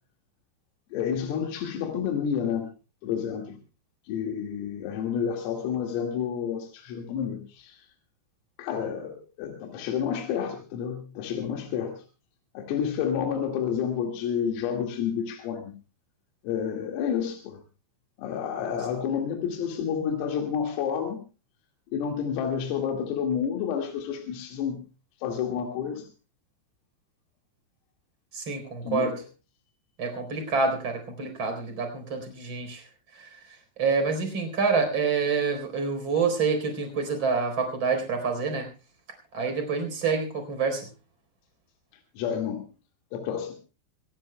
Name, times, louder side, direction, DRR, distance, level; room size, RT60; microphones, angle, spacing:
voice 1, 0.9-2.7 3.0-3.6 4.1-7.9 8.6-12.0 12.5-15.7 16.4-17.6 18.2-21.2 21.9-24.8 25.2-26.1 28.8-29.2 42.2-42.6 43.1-43.6, left 8 dB, 80° left, 3 dB, 4.7 m, -30 dB
voice 2, 28.3-29.1 30.0-32.8 33.8-38.7 39.3-40.8, right 5 dB, 25° right, 6 dB, 4.3 m, -27 dB
24.5 x 18.0 x 2.2 m, 0.32 s
omnidirectional pair, 5.9 m